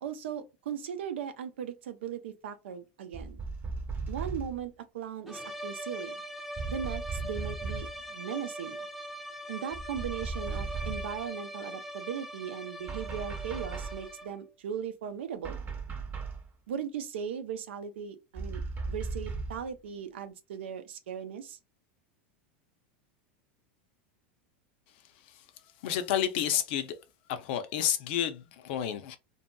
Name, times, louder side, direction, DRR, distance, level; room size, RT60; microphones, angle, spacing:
voice 1, 0.0-3.4 4.1-6.2 6.7-8.9 9.5-15.6 16.7-18.6 18.9-21.6, right 8 dB, 90° right, 0.5 m, -38 dB
sound 1, 3.1-4.6 6.6-8.0 9.7-11.2 12.9-14.1 15.4-16.5 18.4-19.7, right 4 dB, 30° right, 0.9 m, -37 dB
sound 2, 5.3-14.5, right 1 dB, 5° right, 0.6 m, -41 dB
voice 2, 25.8-27.0 27.3-29.2, left 10 dB, 65° left, 0.5 m, -30 dB
2.7 x 2.6 x 2.2 m
supercardioid pair, 120°, 6 cm